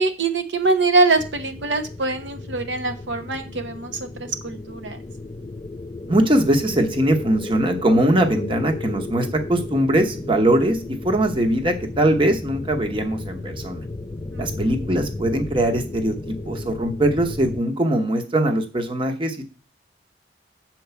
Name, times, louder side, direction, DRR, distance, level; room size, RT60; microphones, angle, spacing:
voice 1, 0.0-5.0 14.3-14.7, right 3 dB, 85° right, 6 dB, 1.0 m, -23 dB
sound 1, 1.2-17.6, left 2 dB, 25° left, 0.5 m, -34 dB
voice 2, 6.1-10.8 11.0-13.8 14.4-19.4, right 1 dB, 30° right, 4 dB, 1.0 m, -21 dB
7.7 x 4.6 x 6.9 m, 0.34 s
head